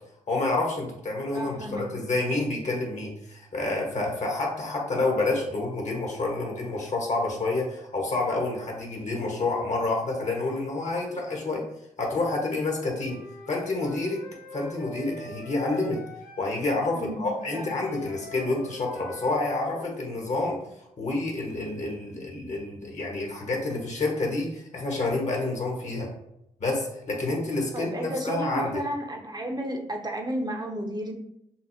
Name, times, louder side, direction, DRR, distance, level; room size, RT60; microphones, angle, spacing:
voice 1, 0.3-11.6 12.0-13.2 13.5-14.2 14.5-16.0 16.4-20.6 21.0-26.1 26.6-28.8, left 2 dB, 50° left, -1 dB, 1.3 m, -28 dB
voice 2, 1.3-1.9 17.0-17.3 17.5-17.7 27.7-31.1, right 1 dB, 30° right, 1 dB, 0.8 m, -32 dB
Wind instrument woodwind instrument, 12.9-16.5 17.4-20.0, left 2 dB, 70° left, 0.5 m, -45 dB
5.7 x 2.0 x 2.8 m, 0.80 s
supercardioid pair, 45°, 15 cm